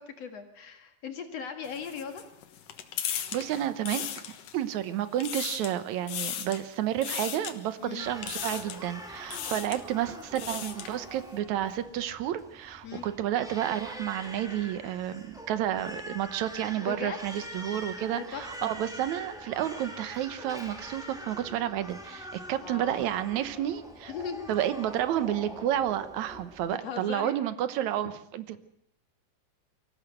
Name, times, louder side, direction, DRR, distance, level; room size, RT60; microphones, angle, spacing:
voice 1, 0.0-2.2 7.8-8.1 9.3-9.6 12.8-13.1 16.8-17.2 18.1-18.7 22.4-23.0 24.1-24.5 26.8-27.3, left 6 dB, 55° left, 5 dB, 2.7 m, -39 dB
sound 1, 1.6-4.7 5.1-5.8 6.1-6.6 7.0-7.5 8.2-8.9 9.2-9.8 10.2-11.0, left 10 dB, 80° left, 3.0 m, -36 dB
voice 2, 3.1-4.1 4.5-24.1 24.5-28.6, right 11 dB, 70° right, 12 dB, 2.2 m, -31 dB
Crying sobbing, 8.0-26.8, equal, ahead, 2.0 m, -44 dB
24.0 x 15.5 x 7.9 m, 0.72 s
omnidirectional pair, 3.7 m